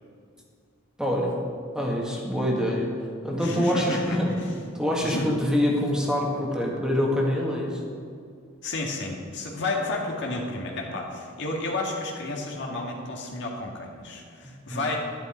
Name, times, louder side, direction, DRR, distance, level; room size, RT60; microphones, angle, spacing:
voice 1, 1.0-1.4 1.7-4.3 4.8-7.8 14.7-15.0, equal, 5° right, -2 dB, 1.8 m, -25 dB
voice 2, 3.4-4.5 5.0-5.3 8.6-15.0, left 2 dB, 60° left, 0 dB, 1.9 m, -31 dB
11.5 x 11.0 x 4.5 m, 2.2 s
head